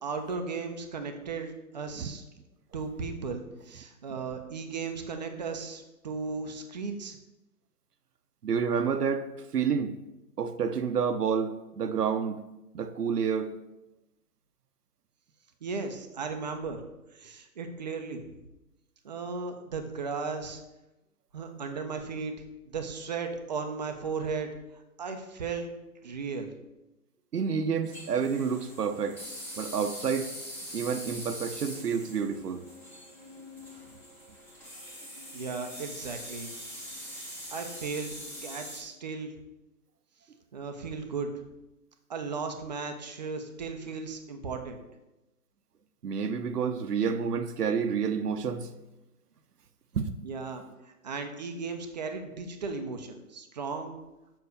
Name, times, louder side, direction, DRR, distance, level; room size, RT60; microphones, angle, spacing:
voice 1, 0.0-2.2 2.7-7.1 15.6-16.8 17.1-18.2 19.0-20.6 21.3-22.3 22.7-24.5 25.0-25.7 26.0-26.5 35.3-36.5 37.5-38.1 38.4-39.3 40.5-41.3 42.1-44.8 50.2-54.0, right 4 dB, 30° right, 0.6 m, -36 dB
voice 2, 8.4-9.9 10.4-12.4 12.7-13.5 27.3-29.2 29.6-30.3 30.7-32.6 46.0-48.7 49.9-50.1, right 6 dB, 85° right, 0.9 m, -29 dB
sound 1, 27.8-38.8, equal, 5° left, 1.1 m, -43 dB
6.3 x 4.7 x 6.7 m
hypercardioid pair, 150°, 46 cm